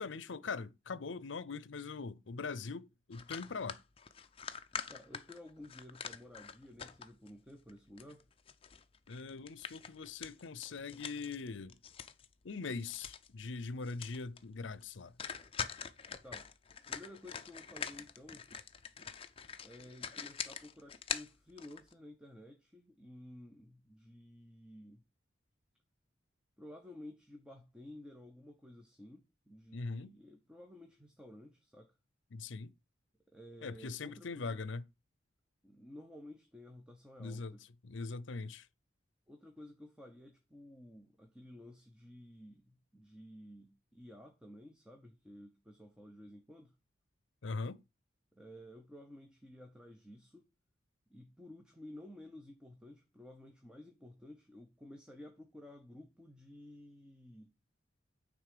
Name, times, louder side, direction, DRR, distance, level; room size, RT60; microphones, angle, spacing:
voice 1, 0.0-3.8 9.1-11.8 12.4-15.1 29.7-30.1 32.3-32.7 33.6-34.8 37.2-37.6 37.8-38.7 47.4-47.8, left 4 dB, 75° left, 0.6 m, -41 dB
sound 1, 3.1-7.3 7.7-12.3 12.6-13.3 13.6-13.7 13.8-14.4 14.7-14.8 15.2-21.9, left 7 dB, 30° left, 0.5 m, -44 dB
voice 2, 4.9-8.3 16.2-16.5 16.9-18.5 19.6-25.0 26.6-31.9 33.3-34.6 35.6-37.6 39.3-46.7 48.3-50.5 51.1-57.5, left 1 dB, 5° right, 0.8 m, -53 dB
9.3 x 3.7 x 6.7 m
head